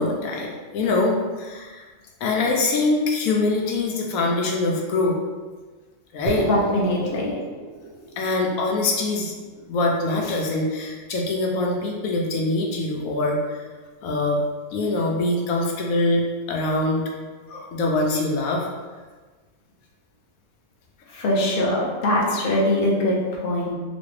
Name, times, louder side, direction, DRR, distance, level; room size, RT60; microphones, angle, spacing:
voice 1, 0.0-1.9 2.2-5.2 6.1-6.5 8.2-9.3 9.7-13.6 14.0-14.4 14.7-16.2 16.5-17.0 17.5-18.7, left 2 dB, 80° left, -1 dB, 1.0 m, -23 dB
sound 1, 6.3-10.6, right 2 dB, 70° right, 1.2 m, -35 dB
voice 2, 6.5-7.4 21.1-23.7, left 1 dB, 50° left, -3 dB, 0.8 m, -22 dB
3.1 x 3.0 x 3.1 m, 1.4 s
omnidirectional pair, 1.4 m